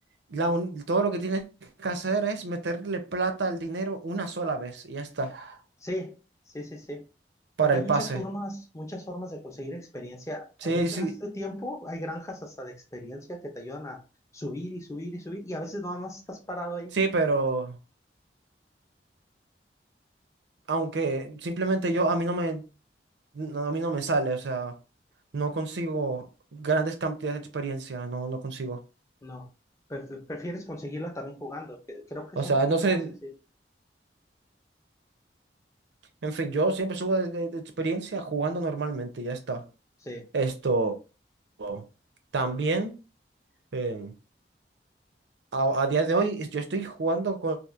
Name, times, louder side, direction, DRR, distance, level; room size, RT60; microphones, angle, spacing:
voice 1, 0.3-1.4 1.8-5.6 7.6-8.2 10.6-11.2 16.9-17.8 20.7-22.6 23.3-24.7 25.3-26.3 26.5-28.8 32.4-33.1 36.2-39.6 40.3-41.0 41.6-41.8 42.3-43.0 43.7-44.1 45.5-47.6, right 3 dB, 85° right, 0.5 m, -28 dB
voice 2, 5.8-6.2 6.5-7.0 7.6-14.0 14.3-16.9 29.2-29.5 29.9-33.3 40.0-40.3, equal, 15° left, 0.5 m, -37 dB
2.9 x 2.4 x 2.4 m
head